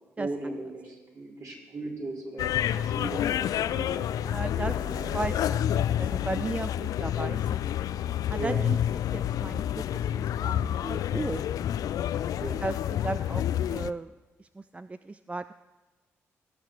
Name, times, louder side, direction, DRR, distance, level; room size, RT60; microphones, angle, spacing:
voice 1, 0.2-4.0 4.5-5.3 8.4-8.7 12.4-12.6, right 2 dB, 50° right, -3 dB, 4.0 m, -38 dB
sound 1, 2.4-13.9, left 10 dB, 65° left, 0.3 m, -29 dB
voice 2, 4.2-4.8 5.1-7.6 8.3-8.8 9.1-11.5 12.6-13.4 13.7-14.1 14.4-15.5, right 2 dB, 20° right, 13 dB, 0.3 m, -35 dB
18.0 x 6.4 x 4.7 m, 1.3 s
hypercardioid pair, 45°, 7 cm